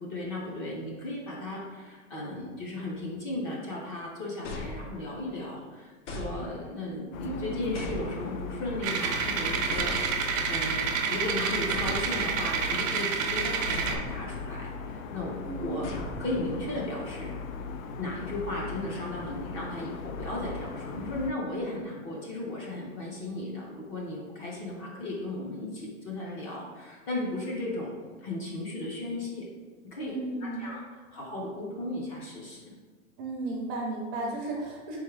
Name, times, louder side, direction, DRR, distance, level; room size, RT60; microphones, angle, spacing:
voice 1, 0.0-17.3 18.0-27.9 28.2-29.4 29.8-30.1 30.4-32.6, left 1 dB, 25° left, -3 dB, 0.5 m, -36 dB
sound 1, 4.4-5.3 6.1-6.9 7.8-8.6 9.7-10.5 11.7-12.7 13.7-14.5 15.8-16.8, left 1 dB, 65° left, 0.8 m, -39 dB
sound 2, 7.1-21.3, left 4 dB, 85° left, 0.5 m, -39 dB
voice 2, 7.2-7.6 15.4-15.9 30.0-30.7 33.2-35.0, right 2 dB, 25° right, -2 dB, 0.5 m, -34 dB
sound 3, 8.8-14.0, right 6 dB, 80° right, 0.7 m, -29 dB
3.6 x 3.5 x 3.2 m, 1.4 s
hypercardioid pair, 150°, 39 cm